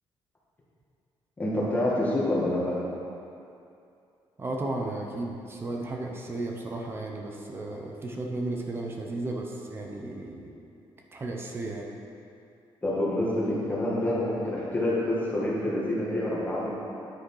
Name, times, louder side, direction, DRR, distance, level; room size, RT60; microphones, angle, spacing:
voice 1, 1.4-2.8 12.8-16.7, left 1 dB, 15° left, -7 dB, 1.8 m, -27 dB
voice 2, 4.4-10.6 11.1-11.9, right 2 dB, 25° right, 0 dB, 0.8 m, -34 dB
9.6 x 6.4 x 4.8 m, 2.6 s
cardioid pair, 175°, 10 cm